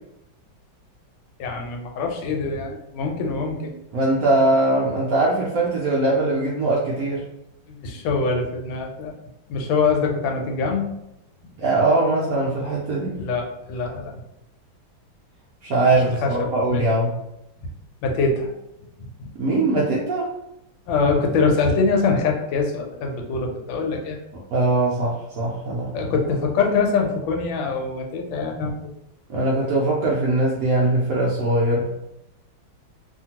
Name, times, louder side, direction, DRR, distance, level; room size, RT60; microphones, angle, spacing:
voice 1, 1.4-3.7 7.7-9.1 9.5-10.9 13.1-14.1 15.9-16.9 18.0-18.5 19.0-19.3 20.9-24.2 25.9-28.9, left 4 dB, 85° left, 2 dB, 1.4 m, -24 dB
voice 2, 3.9-7.2 11.6-13.2 15.6-17.2 19.4-20.3 24.5-26.1 29.3-31.9, right 2 dB, 75° right, -5 dB, 0.8 m, -21 dB
2.8 x 2.6 x 2.8 m, 0.86 s
omnidirectional pair, 2.1 m